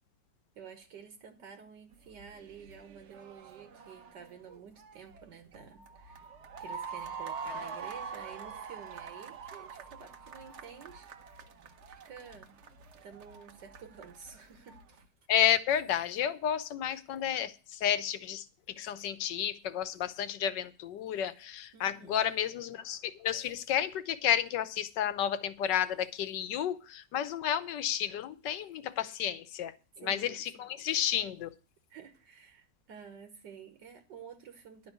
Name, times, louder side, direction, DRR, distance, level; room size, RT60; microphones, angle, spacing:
voice 1, 0.6-6.3 6.6-11.5 11.9-12.6 13.0-15.1 21.7-22.3 30.0-30.5 31.9-34.9, right 7 dB, 75° right, 7 dB, 1.7 m, -50 dB
sound 1, 1.9-15.0, right 5 dB, 50° right, 1.0 m, -45 dB
voice 2, 15.3-31.5, left 10 dB, 80° left, 14 dB, 1.5 m, -31 dB
11.0 x 5.5 x 8.1 m, 0.35 s
omnidirectional pair, 1.9 m